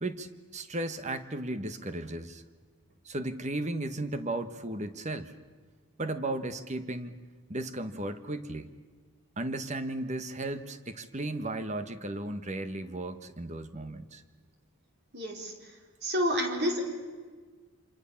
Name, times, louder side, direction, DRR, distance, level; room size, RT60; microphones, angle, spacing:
voice 1, 0.0-2.4 3.0-5.3 6.0-7.1 7.5-8.7 9.4-14.2, right 2 dB, 30° right, 10 dB, 1.3 m, -35 dB
voice 2, 15.1-15.5 16.0-16.8, equal, 50° right, 2 dB, 4.6 m, -29 dB
28.0 x 26.5 x 7.2 m, 1.5 s
head